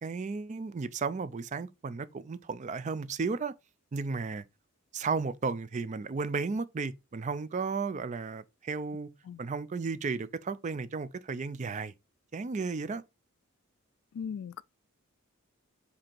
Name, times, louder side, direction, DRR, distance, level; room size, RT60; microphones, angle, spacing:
voice 1, 0.0-3.5 3.9-4.5 4.9-9.1 9.4-11.9 12.3-13.0, right 4 dB, 35° right, 0.4 m, -34 dB
voice 2, 14.1-14.6, left 7 dB, 65° left, 0.3 m, -38 dB
7.6 x 2.8 x 4.4 m
head